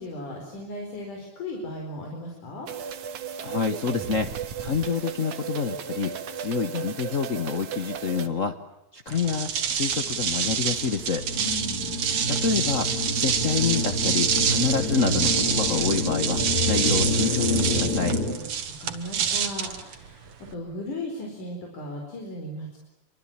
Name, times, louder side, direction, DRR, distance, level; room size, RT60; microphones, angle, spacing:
voice 1, 0.0-2.7 11.4-11.9 18.4-18.5 18.8-22.8, left 1 dB, 90° left, 1 dB, 6.1 m, -36 dB
sound 1, 2.7-8.3, right 8 dB, 75° right, 3.0 m, -35 dB
voice 2, 3.4-4.3 4.6-8.6 8.9-11.2 12.3-18.2, left 5 dB, 65° left, 7 dB, 0.7 m, -27 dB
sound 2, 9.1-20.5, right 7 dB, 60° right, 2.7 m, -27 dB
sound 3, 9.9-18.3, left 2 dB, 35° left, 3.0 m, -28 dB
27.5 x 24.5 x 8.8 m, 0.90 s
omnidirectional pair, 3.5 m